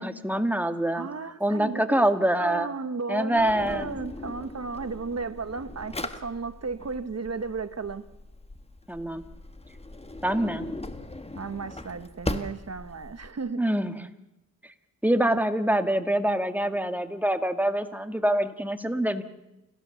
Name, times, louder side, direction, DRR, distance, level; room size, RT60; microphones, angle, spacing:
voice 1, 0.0-1.1 1.4-2.7 3.1-3.9 8.9-9.2 10.2-10.7 13.6-13.9 15.0-19.2, right 1 dB, 5° right, 8 dB, 1.7 m, -25 dB
voice 2, 1.0-2.0 2.4-8.1 11.3-13.6, right 4 dB, 45° right, 11 dB, 1.3 m, -34 dB
Drawer open or close, 3.4-13.3, left 2 dB, 15° left, 1.5 m, -39 dB
29.5 x 14.5 x 7.1 m, 0.96 s
cardioid pair, 70°, 35 cm